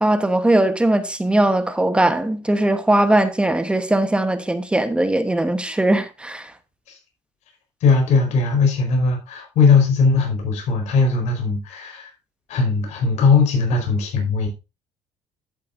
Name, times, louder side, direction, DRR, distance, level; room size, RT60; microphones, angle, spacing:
voice 1, 0.0-6.5, right 1 dB, 10° right, 1.1 m, -19 dB
voice 2, 7.8-12.1 12.5-14.5, left 4 dB, 70° left, 4.6 m, -19 dB
12.0 x 8.2 x 2.6 m
cardioid pair, 125°, 12 cm